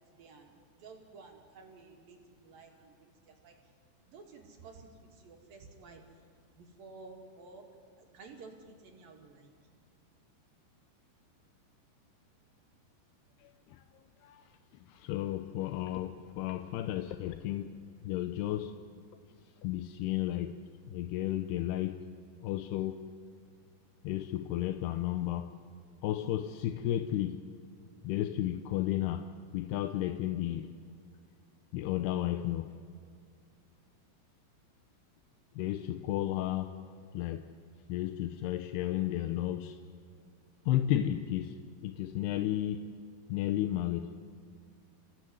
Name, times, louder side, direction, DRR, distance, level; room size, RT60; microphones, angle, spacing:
voice 1, 0.1-3.7 4.1-6.3 6.5-7.7 8.0-9.5, right 4 dB, 55° right, 1 dB, 3.8 m, -53 dB
voice 2, 13.4-13.8 14.2-14.4 14.9-17.7 18.0-18.7 19.6-20.6 20.9-22.0 22.4-23.1 24.0-25.5 26.0-27.4 28.0-29.3 29.5-30.7 31.7-32.7 35.6-36.7 37.1-37.5 37.9-39.8 40.7-41.6 41.8-42.9 43.3-44.1, left 13 dB, 80° left, 9 dB, 2.6 m, -33 dB
28.5 x 16.5 x 9.6 m, 2.2 s
omnidirectional pair, 5.1 m